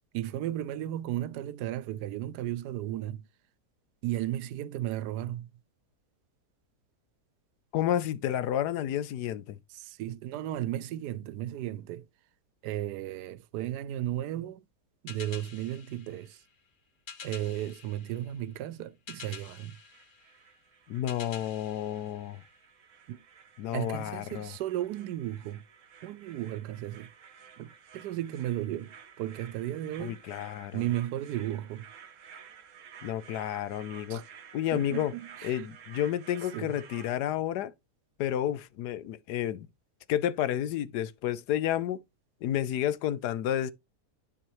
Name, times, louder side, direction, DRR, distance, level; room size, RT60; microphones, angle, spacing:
voice 1, 0.1-3.2 4.0-5.5 9.7-12.1 12.6-14.6 15.0-16.4 17.2-19.8 23.1-23.2 23.7-25.6 26.0-27.1 27.6-30.2 30.7-31.9 34.1-34.3 34.7-35.7 36.5-36.7, right 13 dB, 85° right, 1.2 m, -35 dB
voice 2, 7.7-9.6 20.9-22.4 23.6-24.5 30.0-30.8 33.0-34.2 34.5-35.1 35.4-37.7 38.2-39.7 40.1-42.0 42.4-43.7, left 11 dB, 85° left, 1.2 m, -30 dB
sound 1, 15.1-22.9, left 6 dB, 45° left, 0.8 m, -49 dB
sound 2, 19.6-37.1, right 7 dB, 55° right, 1.2 m, -53 dB
10.5 x 4.6 x 3.1 m
omnidirectional pair, 1.7 m